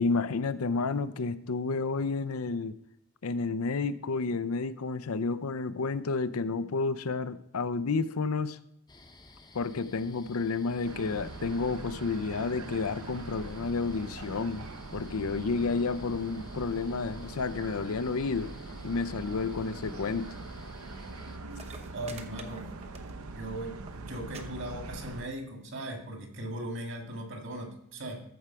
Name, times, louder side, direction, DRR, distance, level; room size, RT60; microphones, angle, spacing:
voice 1, 0.0-2.7 3.2-8.6 9.5-14.7 14.9-18.5 18.8-20.3, left 4 dB, 80° left, 14 dB, 0.6 m, -30 dB
sound 1, 8.9-21.4, left 2 dB, 20° left, 0.8 m, -54 dB
sound 2, 10.8-25.3, right 2 dB, 75° right, 0.8 m, -43 dB
sound 3, 21.2-21.3 21.5-23.4 23.7-24.0 24.3-24.4 24.7-25.2 26.0-26.1, right 4 dB, 30° right, 0.9 m, -48 dB
voice 2, 21.9-22.7 23.3-28.2, right 1 dB, 55° right, 2 dB, 2.1 m, -38 dB
14.0 x 4.8 x 5.7 m, 0.76 s
head